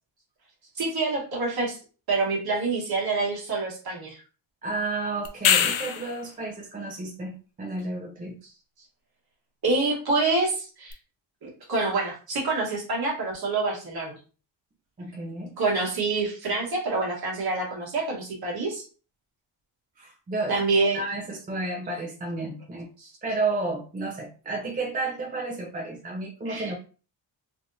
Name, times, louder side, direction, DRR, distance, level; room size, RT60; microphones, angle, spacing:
voice 1, 0.7-1.8 2.1-4.2 9.6-10.9 11.4-14.2 15.6-18.8 20.5-21.0 23.0-23.1 26.4-26.7, right 3 dB, 50° right, -2 dB, 1.3 m, -27 dB
voice 2, 4.6-8.4 15.0-15.5 20.0-20.6 20.9-22.9 23.2-26.7, right 2 dB, 20° right, 0 dB, 0.6 m, -32 dB
sound 1, 5.3-6.2 10.9-11.0, left 9 dB, 80° left, 0.6 m, -22 dB
3.3 x 2.8 x 2.6 m, 0.36 s
wide cardioid pair, 145°, 48 cm